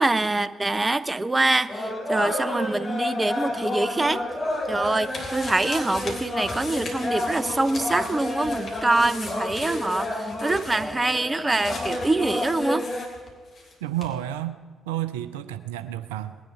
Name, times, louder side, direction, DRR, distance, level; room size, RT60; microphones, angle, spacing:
voice 1, 0.0-4.2 4.7-12.9, right 2 dB, 20° right, 15 dB, 0.6 m, -24 dB
sound 1, 1.7-13.1, left 1 dB, 25° left, 3.0 m, -30 dB
sound 2, 4.1-13.7 14.0-14.1, left 2 dB, 45° left, 3.4 m, -40 dB
voice 2, 13.8-14.6 14.9-16.4, right 13 dB, 75° right, 13 dB, 0.5 m, -30 dB
19.5 x 10.5 x 5.7 m, 1.5 s
figure-of-eight pair, 40°, 0 cm